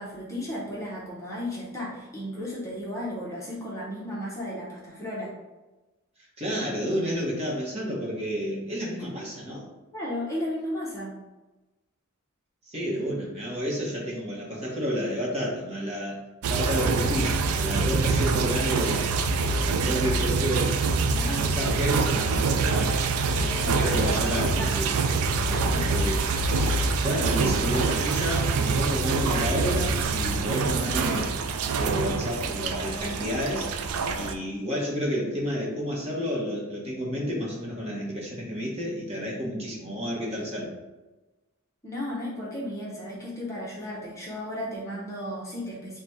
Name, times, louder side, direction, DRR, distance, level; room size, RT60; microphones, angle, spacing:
voice 1, 0.0-5.4 9.9-11.2 21.1-21.7 23.4-24.9 25.3-26.1 41.8-46.0, left 1 dB, 15° left, -6 dB, 0.8 m, -35 dB
voice 2, 6.4-9.6 12.7-16.2 16.5-19.1 19.6-20.8 21.3-22.9 23.8-24.9 25.9-26.2 27.0-31.3 31.8-33.7 34.1-40.7, equal, 30° right, -4 dB, 1.0 m, -30 dB
sound 1, 16.4-34.3, right 4 dB, 80° right, 0.4 m, -25 dB
4.0 x 2.3 x 4.4 m, 1.1 s
head